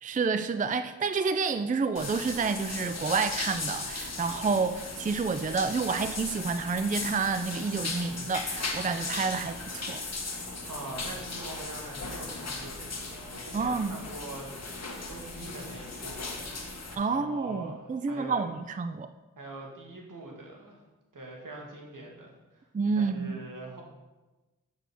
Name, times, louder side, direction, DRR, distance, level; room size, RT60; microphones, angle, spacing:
voice 1, 0.0-10.0 13.5-14.0 17.0-19.1 22.7-23.4, right 4 dB, 25° right, 11 dB, 0.4 m, -29 dB
sound 1, 2.0-17.0, left 3 dB, 50° left, 1.5 m, -37 dB
voice 2, 10.7-16.5 17.0-18.4 19.4-20.8 21.1-22.7 22.9-23.8, right 2 dB, 70° right, -1 dB, 2.3 m, -43 dB
6.9 x 6.6 x 6.2 m, 1.1 s
wide cardioid pair, 60°, 33 cm